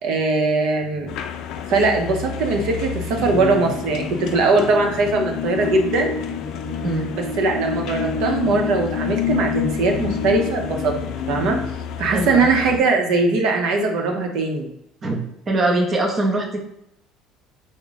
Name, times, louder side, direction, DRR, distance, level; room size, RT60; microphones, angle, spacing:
voice 1, 0.0-1.1 1.7-6.1 7.1-10.9 11.3-11.6 12.0-14.7, right 3 dB, 65° right, 2 dB, 0.7 m, -20 dB
sound 1, 1.1-12.8, left 7 dB, 60° left, 0.4 m, -33 dB
sound 2, 3.1-11.7, left 6 dB, 35° left, 0.9 m, -28 dB
voice 2, 12.1-12.5 15.0-15.2 15.5-16.6, right 2 dB, 25° right, 1 dB, 0.6 m, -22 dB
3.6 x 2.1 x 3.9 m, 0.81 s
cardioid pair, 140°, 0 cm